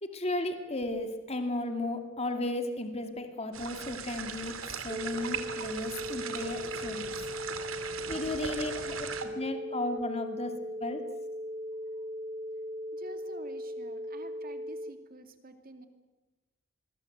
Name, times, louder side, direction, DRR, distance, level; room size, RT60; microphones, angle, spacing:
voice 1, 0.0-7.1 8.1-11.1, left 2 dB, 30° left, 6 dB, 2.5 m, -35 dB
sound 1, 3.5-9.2, right 6 dB, 90° right, 2.8 m, -39 dB
sound 2, 4.9-14.9, equal, 20° right, 0.9 m, -38 dB
voice 2, 12.9-15.9, right 1 dB, 45° right, 7 dB, 2.6 m, -49 dB
27.5 x 22.5 x 8.1 m, 1.1 s
head